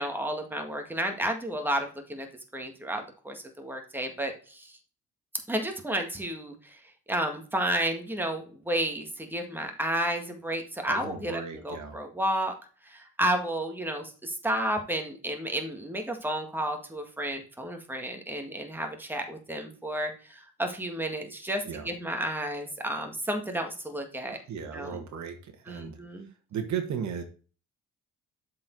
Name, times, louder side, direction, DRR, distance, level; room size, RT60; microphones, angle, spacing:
voice 1, 0.0-2.3 2.5-4.7 5.5-6.8 7.1-12.5 12.9-24.4 24.7-25.0 25.7-26.3, right 1 dB, 5° right, 4 dB, 1.8 m, -32 dB
voice 2, 10.9-12.0 21.6-21.9 24.3-26.0 26.5-27.2, right 7 dB, 70° right, 6 dB, 1.6 m, -36 dB
7.3 x 4.7 x 4.6 m, 0.37 s
cardioid pair, 90°, 30 cm